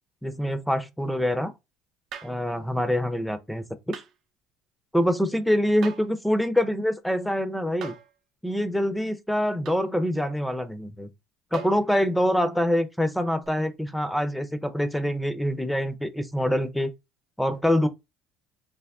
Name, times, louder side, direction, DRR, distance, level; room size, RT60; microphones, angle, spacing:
voice 1, 0.2-1.5 2.2-4.0 4.9-7.9 8.4-11.1 11.5-16.9 17.4-17.9, equal, 5° left, 0.5 m, -25 dB
sound 1, 2.1-2.4 3.9-4.1 5.8-6.2 7.8-8.2 9.7-9.9 11.5-11.9 13.4-13.5, right 7 dB, 55° right, 0.5 m, -39 dB
3.5 x 2.1 x 3.5 m
supercardioid pair, 80°, 0 cm